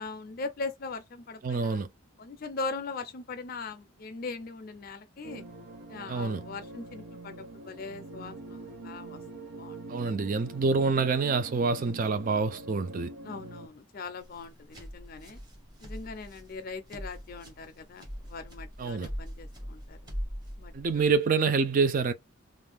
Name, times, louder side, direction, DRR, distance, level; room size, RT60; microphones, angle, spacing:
voice 1, 0.0-1.8 2.2-5.4 5.9-9.2 9.6-9.8 13.2-15.4 15.8-20.0 20.6-21.0, left 4 dB, 45° left, 0.4 m, -40 dB
voice 2, 1.4-1.9 6.1-6.4 9.9-13.1 18.8-19.1 20.7-22.1, right 4 dB, 40° right, 0.3 m, -26 dB
sound 1, 5.2-13.7, right 2 dB, 90° right, 0.6 m, -44 dB
sound 2, 14.2-21.1, equal, 20° right, 0.8 m, -41 dB
2.6 x 2.2 x 3.4 m
head